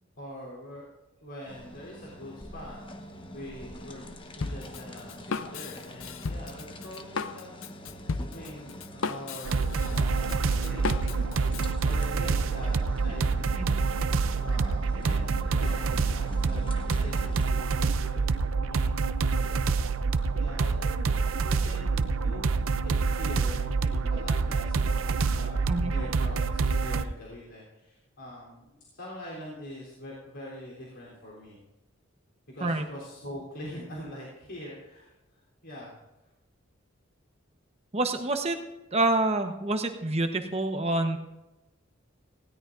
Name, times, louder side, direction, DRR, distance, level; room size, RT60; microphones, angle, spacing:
voice 1, 0.2-0.8 1.2-4.0 4.4-7.9 8.3-11.2 11.8-13.7 14.3-16.6 17.0-18.9 19.6-31.6 32.5-36.0, equal, 65° left, -6 dB, 3.5 m, -44 dB
sound 1, 1.5-17.5, equal, 25° left, 1.0 m, -45 dB
Drum kit, 4.4-11.7, left 4 dB, 85° left, 0.6 m, -35 dB
sound 2, 9.4-27.0, right 4 dB, 80° right, 0.6 m, -27 dB
voice 2, 37.9-38.6 38.9-41.2, right 2 dB, 30° right, 6 dB, 1.1 m, -27 dB
19.0 x 16.5 x 2.6 m, 1.0 s
head